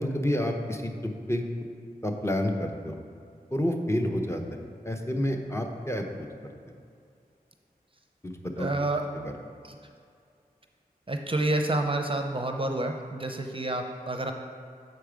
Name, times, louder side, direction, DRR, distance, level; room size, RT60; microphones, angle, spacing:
voice 1, 0.0-1.4 2.0-2.9 3.5-4.4 4.8-6.3 8.2-9.3, left 1 dB, 15° left, 3 dB, 0.7 m, -29 dB
voice 2, 8.6-9.0 9.6-9.8 11.1-14.3, right 2 dB, 35° right, 4 dB, 0.6 m, -29 dB
6.7 x 4.6 x 5.1 m, 2.3 s
cardioid pair, 40°, 16 cm